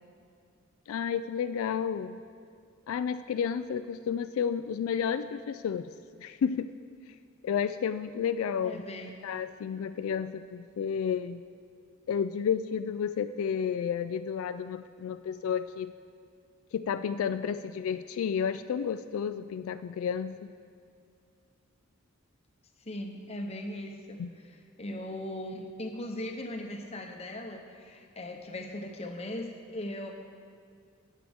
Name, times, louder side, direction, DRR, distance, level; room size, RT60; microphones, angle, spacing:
voice 1, 0.9-2.2 2.9-5.9 6.2-6.7 7.4-8.8 9.2-11.4 12.1-15.9 16.7-20.5 24.2-24.3, left 7 dB, 80° left, 11 dB, 0.3 m, -31 dB
voice 2, 8.6-9.3 22.8-24.2 24.8-30.1, left 1 dB, 30° left, 3 dB, 0.8 m, -39 dB
17.0 x 7.5 x 3.5 m, 2.3 s
head